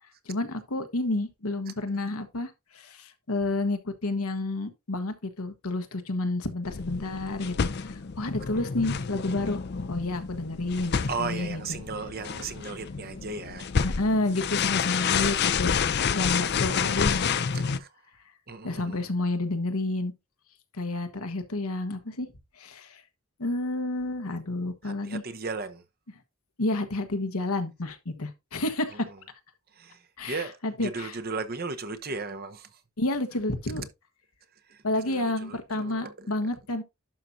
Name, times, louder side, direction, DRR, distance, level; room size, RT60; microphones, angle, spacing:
voice 1, 0.3-9.6 9.9-11.8 13.8-17.8 18.6-20.1 20.8-22.3 22.6-23.0 23.4-25.2 26.6-29.1 30.2-30.3 30.6-31.1 33.0-33.8 34.8-36.8, left 2 dB, 85° left, 1.3 m, -30 dB
sound 1, 6.7-17.8, left 6 dB, 50° left, 0.5 m, -29 dB
voice 2, 11.1-13.7 17.5-17.9 18.5-19.0 24.8-25.8 28.9-29.2 29.7-32.8 34.6-36.5, right 4 dB, 45° right, 0.9 m, -36 dB
11.5 x 6.0 x 2.7 m
head